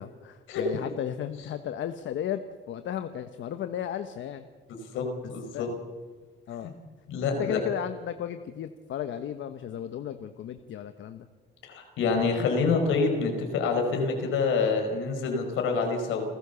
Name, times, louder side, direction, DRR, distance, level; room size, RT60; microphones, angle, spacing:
voice 1, 0.0-2.4 2.7-4.5 5.5-5.7 6.5-6.7 7.4-11.3, left 10 dB, 75° left, 9 dB, 1.2 m, -34 dB
voice 2, 4.9-5.7 7.1-7.7 11.6-16.2, left 4 dB, 90° left, 4 dB, 5.0 m, -27 dB
29.0 x 14.0 x 7.0 m, 1.4 s
cardioid pair, 90°, 20 cm